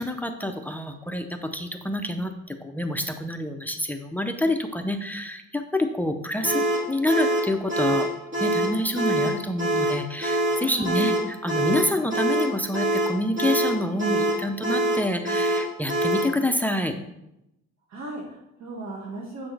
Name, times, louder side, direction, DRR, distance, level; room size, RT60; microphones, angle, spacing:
voice 1, 0.0-8.1 8.4-11.1 11.4-16.9, left 1 dB, 5° left, 7 dB, 0.7 m, -27 dB
sound 1, 6.4-16.4, right 1 dB, 40° right, 2.1 m, -25 dB
voice 2, 10.5-11.1 17.9-19.5, right 2 dB, 60° right, -2 dB, 1.9 m, -36 dB
8.7 x 6.0 x 3.4 m, 0.86 s
cardioid pair, 90°, 30 cm